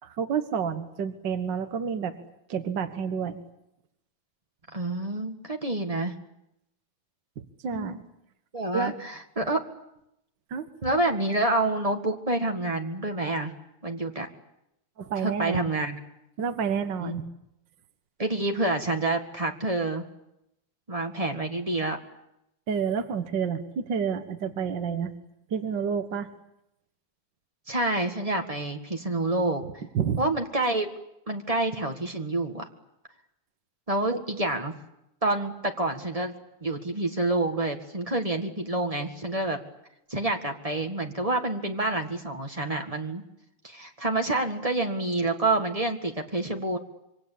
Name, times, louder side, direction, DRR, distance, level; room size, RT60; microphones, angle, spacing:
voice 1, 0.0-2.1 2.5-3.4 7.6-8.0 8.7-8.9 10.5-10.7 15.0-15.6 16.4-17.3 22.7-25.1 25.5-26.3 29.9-30.2 34.1-34.2, right 7 dB, 60° right, 9 dB, 1.2 m, -29 dB
voice 2, 4.7-6.1 7.7-8.0 8.5-9.6 10.8-13.5 13.8-14.3 15.2-16.0 17.0-17.2 18.2-20.0 20.9-22.0 27.7-29.8 30.2-30.9 31.3-32.7 33.9-34.7 35.2-36.3 36.6-39.6 40.1-43.2 43.6-46.8, right 2 dB, 35° right, 3 dB, 0.5 m, -28 dB
26.5 x 24.5 x 8.6 m, 0.82 s
omnidirectional pair, 4.1 m